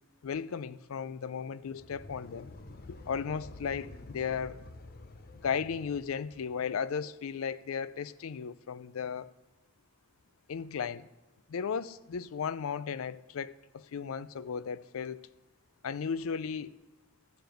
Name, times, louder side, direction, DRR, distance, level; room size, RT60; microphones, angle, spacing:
voice 1, 0.2-2.5 3.1-4.6 5.4-9.3 10.5-11.1 11.5-15.3 15.8-16.7, left 6 dB, 75° left, 0.4 m, -35 dB
sound 1, 1.6-6.8, left 2 dB, 45° left, 0.8 m, -49 dB
12.5 x 6.9 x 7.7 m
head